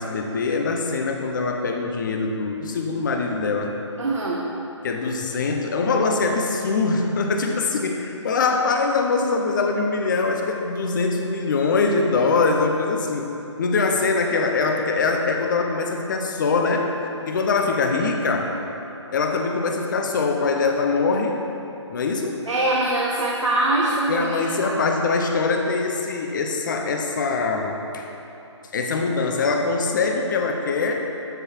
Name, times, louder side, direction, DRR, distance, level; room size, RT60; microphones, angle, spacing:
voice 1, 0.0-3.8 4.8-13.3 13.6-16.9 17.2-18.5 19.1-21.4 21.9-22.4 24.1-28.1 28.7-31.1, left 4 dB, 40° left, 3 dB, 0.9 m, -23 dB
voice 2, 4.0-4.4 18.0-18.2 22.5-24.4 24.6-24.8, right 2 dB, 80° right, -4 dB, 1.3 m, -23 dB
13.0 x 4.8 x 4.5 m, 2.9 s
figure-of-eight pair, 150°, 16 cm